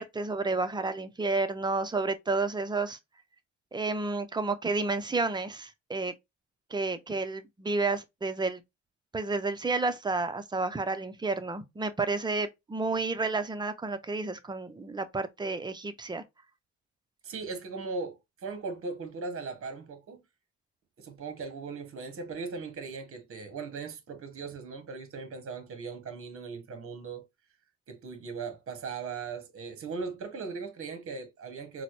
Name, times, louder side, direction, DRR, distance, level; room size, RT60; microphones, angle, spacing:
voice 1, 0.0-3.0 3.7-6.1 6.7-8.6 9.1-16.2, right 3 dB, 15° right, 0.4 m, -31 dB
voice 2, 17.2-20.2 21.0-27.2 27.9-31.8, right 4 dB, 45° right, 0.9 m, -38 dB
4.0 x 2.0 x 2.9 m
cardioid pair, 90°, 30 cm